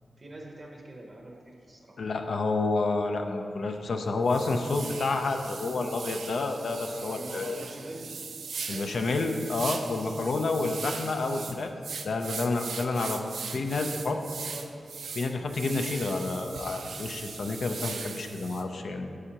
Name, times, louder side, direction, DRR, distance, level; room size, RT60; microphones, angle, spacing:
voice 1, 0.2-2.0 7.0-9.2 14.5-14.8, right 1 dB, 25° right, 1 dB, 0.7 m, -44 dB
voice 2, 2.0-7.6 8.7-11.7 12.0-13.2 13.5-14.2 15.1-19.2, left 3 dB, 60° left, 5 dB, 0.5 m, -29 dB
sound 1, 3.7-3.8 4.3-18.6, right 5 dB, 75° right, 0.5 m, -40 dB
9.7 x 7.7 x 2.9 m, 2.5 s
wide cardioid pair, 180°, 0 cm